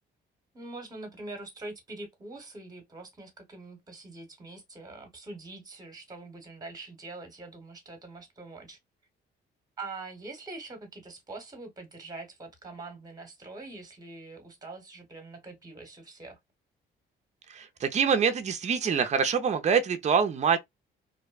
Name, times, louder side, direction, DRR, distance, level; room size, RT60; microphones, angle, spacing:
voice 1, 0.5-8.8 9.8-16.4, right 3 dB, 20° right, 1.0 m, -44 dB
voice 2, 17.5-20.6, right 6 dB, 35° right, 0.5 m, -25 dB
2.6 x 2.1 x 2.2 m
cardioid pair, 90°, 20 cm